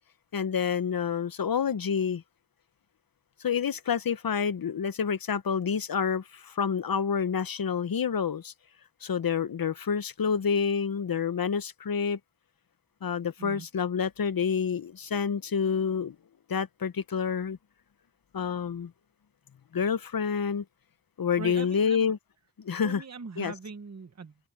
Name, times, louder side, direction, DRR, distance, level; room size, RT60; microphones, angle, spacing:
voice 1, 0.3-2.2 3.4-8.5 9.0-12.2 13.0-16.2 16.5-17.6 18.3-18.9 19.7-20.6 21.2-22.2 22.6-23.0 23.4-23.5, left 6 dB, 75° left, 0.8 m, -28 dB
voice 2, 21.4-22.1 22.8-24.3, right 4 dB, 50° right, 0.9 m, -41 dB
open air
wide cardioid pair, 70°, 35 cm